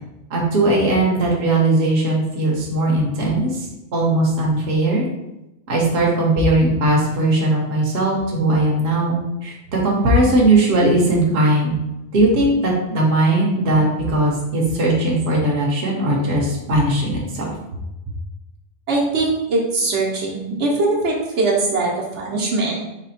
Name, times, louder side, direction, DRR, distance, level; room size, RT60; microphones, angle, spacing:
voice 1, 0.3-3.7 3.9-5.1 5.7-11.7 12.1-17.5, right 1 dB, 65° right, -2 dB, 1.1 m, -18 dB
voice 2, 18.9-22.8, right 3 dB, 80° right, -4 dB, 1.2 m, -21 dB
4.1 x 2.3 x 4.1 m, 0.93 s
omnidirectional pair, 1.2 m